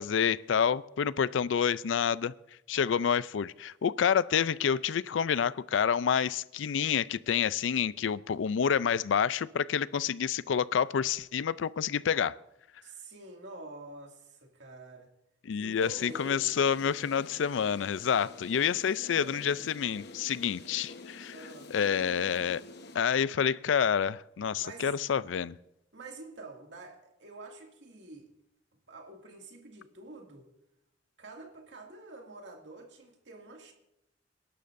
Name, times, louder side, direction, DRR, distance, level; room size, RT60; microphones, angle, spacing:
voice 1, 0.0-2.3 2.7-12.4 15.5-21.3 21.7-22.6 22.9-25.6, left 7 dB, 90° left, 0.4 m, -28 dB
voice 2, 12.8-15.1 15.5-16.4 18.2-19.5 21.3-21.7 24.6-24.9 25.9-28.3 28.9-30.5 31.2-33.7, right 2 dB, 70° right, 2.2 m, -48 dB
sound 1, 15.8-23.0, left 3 dB, 60° left, 1.1 m, -49 dB
28.5 x 11.5 x 2.6 m
head